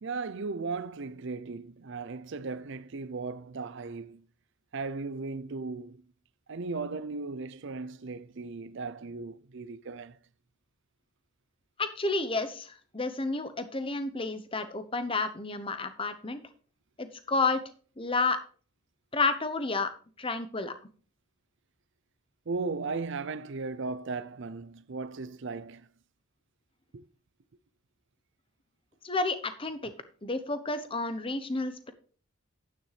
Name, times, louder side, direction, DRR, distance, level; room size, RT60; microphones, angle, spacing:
voice 1, 0.0-4.2 4.7-6.0 6.5-10.2 22.5-25.9 26.9-27.1, right 4 dB, 55° right, 0.5 m, -36 dB
voice 2, 11.8-16.4 17.0-17.6 18.0-18.4 19.1-19.9 20.2-20.7 29.0-29.9 30.2-31.9, left 3 dB, 25° left, 0.9 m, -30 dB
10.0 x 9.2 x 3.3 m
head